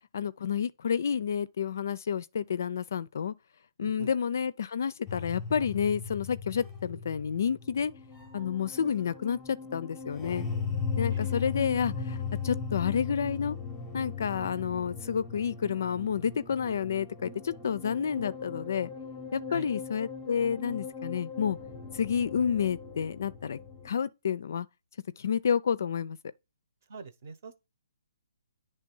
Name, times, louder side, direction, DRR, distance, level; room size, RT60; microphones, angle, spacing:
voice 1, 0.1-3.3 3.8-7.9 8.3-10.5 11.0-13.6 13.9-18.9 19.3-21.6 21.9-23.6 23.8-24.7 25.2-26.2, left 7 dB, 45° left, 0.4 m, -30 dB
voice 2, 3.8-4.1 11.1-11.4 19.5-19.7 26.9-27.6, right 5 dB, 35° right, 0.9 m, -44 dB
sound 1, 5.1-23.9, left 6 dB, 5° left, 0.8 m, -38 dB
9.5 x 3.3 x 5.4 m
hypercardioid pair, 175°, 2 cm